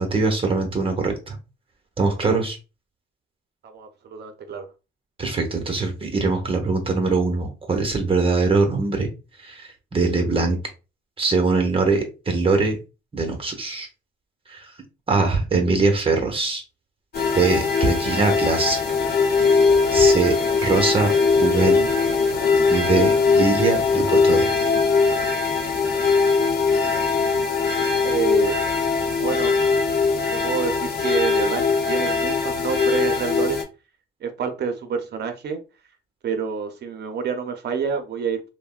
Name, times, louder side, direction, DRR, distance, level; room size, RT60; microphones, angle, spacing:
voice 1, 0.0-1.4 2.0-2.6 5.2-9.1 9.4-10.6 11.2-12.8 13.1-13.9 14.5-14.7 15.1-16.6 17.3-18.8 19.9-20.3 20.6-21.9 22.7-24.5, right 3 dB, 25° right, 4 dB, 0.9 m, -22 dB
voice 2, 3.6-4.7 28.0-28.6 29.2-29.6 30.3-33.6 34.2-35.6 36.2-38.5, right 6 dB, 55° right, 7 dB, 0.7 m, -28 dB
sound 1, 17.1-33.6, left 4 dB, 50° left, 0.8 m, -20 dB
3.4 x 2.1 x 2.3 m, 0.30 s
cardioid pair, 90°, 20 cm